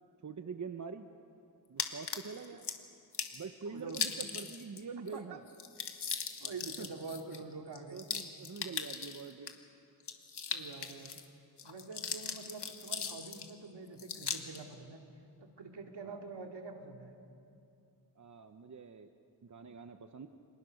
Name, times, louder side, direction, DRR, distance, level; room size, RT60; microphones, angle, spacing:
voice 1, 0.2-1.1 1.7-2.6 3.3-5.4 6.8-6.9 7.9-9.6 16.1-16.2 18.2-19.1 19.4-20.3, right 5 dB, 45° right, 7 dB, 0.9 m, -45 dB
sound 1, 1.8-2.8 3.1-3.4 3.9-4.8 5.1-5.2 5.5-9.5 10.0-11.2 11.6-13.5 14.0-14.6, left 6 dB, 70° left, 1.8 m, -39 dB
voice 2, 3.6-4.0 5.1-5.4 6.4-8.0 10.5-11.1 11.6-15.0 15.4-17.1, right 4 dB, 70° right, 3 dB, 2.5 m, -46 dB
29.0 x 26.5 x 6.5 m, 2.7 s
wide cardioid pair, 135°, 42 cm